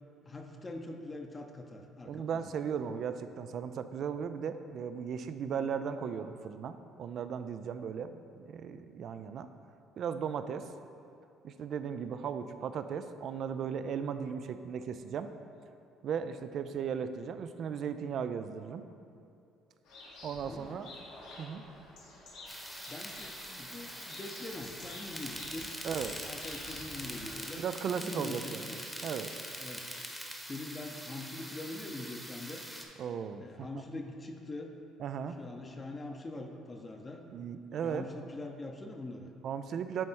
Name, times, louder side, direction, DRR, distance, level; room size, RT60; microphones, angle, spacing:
voice 1, 0.2-2.5 20.5-20.8 22.9-25.7 26.2-27.6 28.0-28.8 29.6-29.9 30.4-32.6 33.4-34.7 35.4-37.3 37.7-39.3, left 2 dB, 30° left, 3 dB, 0.7 m, -43 dB
voice 2, 2.1-9.5 10.0-10.7 11.4-15.3 16.0-18.8 20.2-20.9 21.4-21.6 25.8-26.2 27.6-28.7 29.0-29.3 33.0-33.7 35.0-35.4 37.3-38.0 39.4-40.0, right 7 dB, 60° right, 10 dB, 0.3 m, -36 dB
sound 1, 19.9-27.4, left 2 dB, 80° left, 1.3 m, -50 dB
sound 2, 22.5-32.9, equal, ahead, 0.9 m, -43 dB
8.7 x 3.2 x 4.4 m, 2.5 s
supercardioid pair, 70°, 0 cm